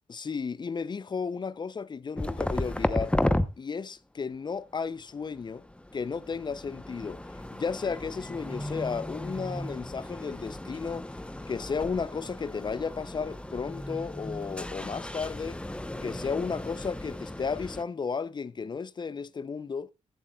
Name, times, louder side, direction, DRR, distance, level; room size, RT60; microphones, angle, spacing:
voice 1, 0.1-3.2 3.6-5.6 5.9-7.2 7.5-11.1 11.5-15.6 16.0-19.9, left 5 dB, 35° left, 0.5 m, -33 dB
sound 1, 2.2-3.5 5.1-17.8, left 1 dB, 10° left, 0.8 m, -34 dB
14.5 x 10.5 x 2.3 m
cardioid pair, 80°, 13 cm